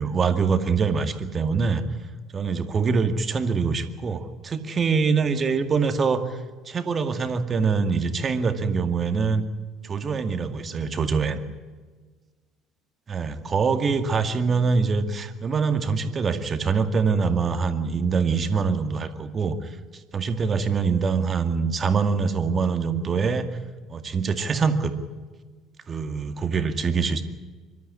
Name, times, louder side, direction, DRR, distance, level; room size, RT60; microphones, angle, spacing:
voice 1, 0.0-1.8 2.3-9.4 9.8-11.4 13.1-19.8 20.1-23.5 23.9-24.9 25.9-27.2, right 5 dB, 35° right, 8 dB, 2.1 m, -24 dB
25.5 x 13.0 x 9.8 m, 1.4 s
figure-of-eight pair, 55°, 0 cm